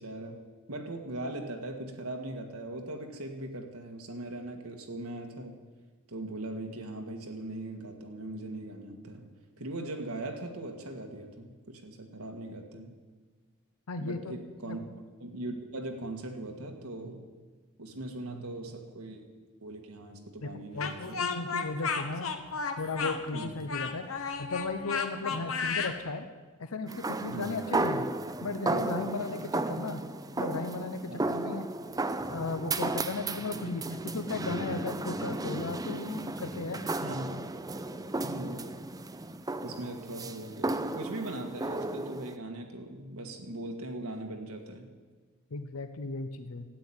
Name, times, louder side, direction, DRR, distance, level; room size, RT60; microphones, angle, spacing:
voice 1, 0.0-5.6 6.1-9.3 9.6-12.9 14.0-17.2 17.8-19.3 19.6-21.2 23.3-23.6 27.3-27.5 31.1-31.2 37.0-37.8 38.2-38.7 39.6-44.9, right 1 dB, 90° right, 4 dB, 1.9 m, -40 dB
voice 2, 13.9-14.2 14.6-14.8 20.4-22.3 22.8-24.1 24.4-26.3 26.6-28.1 28.4-30.0 30.3-31.7 32.3-36.8 45.5-46.7, left 3 dB, 85° left, 9 dB, 0.8 m, -35 dB
Speech, 20.8-26.0, left 5 dB, 65° left, 1.1 m, -33 dB
sound 1, 26.9-42.4, right 2 dB, 15° right, 0.5 m, -34 dB
13.0 x 9.3 x 8.8 m, 1.4 s
head